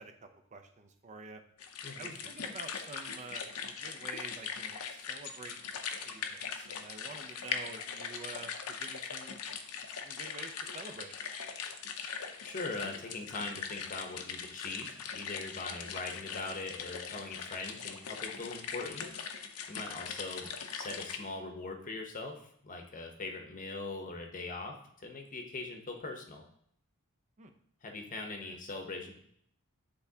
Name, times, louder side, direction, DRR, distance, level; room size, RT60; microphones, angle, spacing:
voice 1, 0.0-1.4 2.0-9.4 10.0-11.1 27.4-27.5 28.4-28.6, right 3 dB, 30° right, 6 dB, 0.5 m, -48 dB
sound 1, 1.6-21.2, left 6 dB, 75° left, 0.6 m, -41 dB
voice 2, 1.8-2.2 12.4-19.1 19.7-26.4 27.8-29.1, left 3 dB, 35° left, 3 dB, 0.8 m, -41 dB
10.0 x 3.4 x 2.8 m, 0.67 s
head